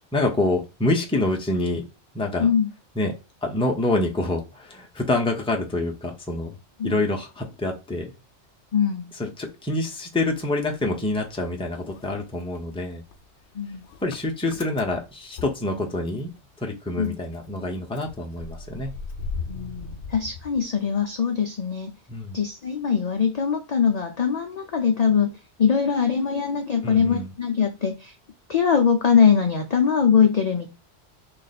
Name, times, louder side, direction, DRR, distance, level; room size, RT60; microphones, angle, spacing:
voice 1, 0.1-1.8 2.1-2.5 3.0-3.1 3.4-6.6 6.8-8.1 9.1-13.0 14.0-16.3 16.6-18.9 22.1-22.4 26.8-27.3, left 2 dB, 5° left, 1 dB, 0.6 m, -26 dB
voice 2, 8.7-9.1 13.5-13.8 17.0-17.2 19.5-21.9 22.3-25.3 25.6-28.1 28.5-30.7, left 7 dB, 50° left, 3 dB, 0.5 m, -22 dB
Motor vehicle (road) / Engine starting, 10.3-11.4 11.7-16.4 16.7-16.8 17.0-21.2, left 4 dB, 70° left, 0.9 m, -39 dB
3.1 x 2.5 x 4.0 m, 0.28 s
omnidirectional pair, 1.2 m